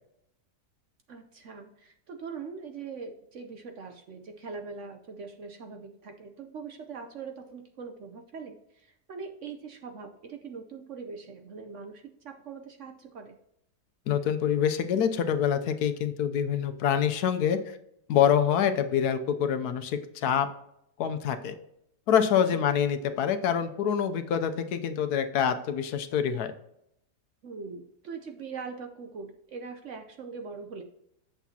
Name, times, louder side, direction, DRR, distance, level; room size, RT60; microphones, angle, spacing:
voice 1, 1.1-13.4 22.5-22.7 27.4-30.8, right 5 dB, 60° right, 5 dB, 0.9 m, -42 dB
voice 2, 14.1-17.8 18.1-20.5 21.0-21.5 22.1-26.5, left 8 dB, 75° left, 9 dB, 1.1 m, -26 dB
8.2 x 7.0 x 2.8 m, 0.77 s
omnidirectional pair, 1.8 m